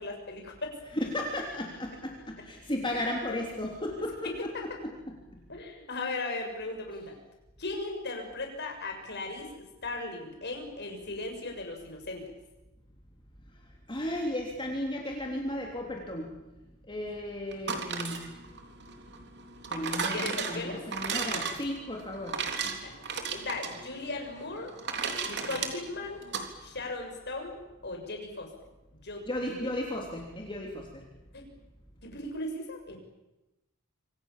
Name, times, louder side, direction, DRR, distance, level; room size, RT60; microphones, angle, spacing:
voice 1, 0.0-0.8 3.3-3.4 4.2-4.3 5.5-7.1 7.6-12.3 20.1-20.8 21.3-21.4 22.8-23.0 23.3-24.7 25.2-26.2 26.6-28.5 29.0-29.6 31.3-31.4 32.0-33.0, left 2 dB, 50° left, 3 dB, 6.9 m, -37 dB
voice 2, 0.9-5.1 13.9-16.3 16.9-18.2 19.7-22.4 25.5-25.6 29.3-31.1, left 1 dB, 20° left, 0 dB, 3.3 m, -35 dB
sound 1, 17.5-26.5, right 5 dB, 50° right, 3.5 m, -35 dB
27.0 x 26.0 x 7.5 m, 0.99 s
head